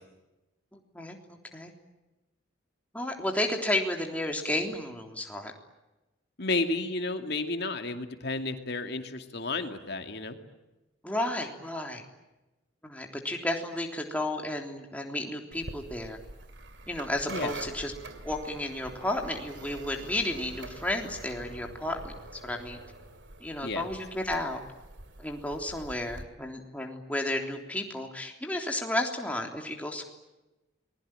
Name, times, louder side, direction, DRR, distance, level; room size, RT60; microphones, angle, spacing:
voice 1, 0.7-1.7 2.9-5.5 11.0-12.0 12.8-16.2 16.9-17.9 18.2-22.8 23.4-24.6 25.2-30.1, left 1 dB, 10° left, 2 dB, 3.4 m, -32 dB
voice 2, 6.4-10.4 17.3-17.5 23.6-23.8, left 3 dB, 55° left, 6 dB, 2.5 m, -32 dB
sound 1, 15.5-26.2, right 2 dB, 65° right, 2.9 m, -45 dB
29.5 x 21.5 x 9.0 m, 1.0 s
head